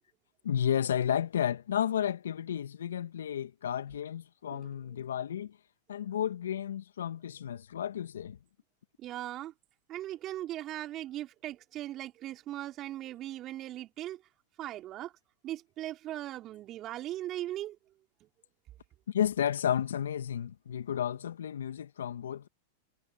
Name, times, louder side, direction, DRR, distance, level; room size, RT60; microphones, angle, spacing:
voice 1, 0.4-5.6 5.9-8.4 19.1-22.5, left 9 dB, 80° left, 2.3 m, -32 dB
voice 2, 9.0-9.5 9.9-14.2 14.6-15.1 15.4-17.8, right 14 dB, 40° right, 5.1 m, -39 dB
hypercardioid pair, 100°, 0 cm